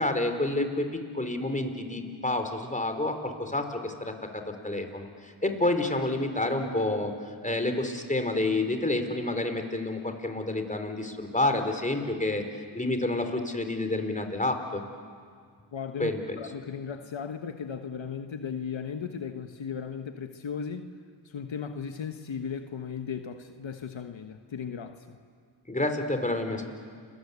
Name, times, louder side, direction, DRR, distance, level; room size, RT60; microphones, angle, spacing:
voice 1, 0.0-12.4 12.7-14.8 16.0-16.4 25.7-26.7, left 2 dB, 15° left, 6 dB, 4.2 m, -29 dB
voice 2, 15.7-21.0 21.2-25.2, left 6 dB, 70° left, 6 dB, 1.4 m, -36 dB
29.5 x 22.0 x 8.3 m, 2.1 s
cardioid pair, 50°, 48 cm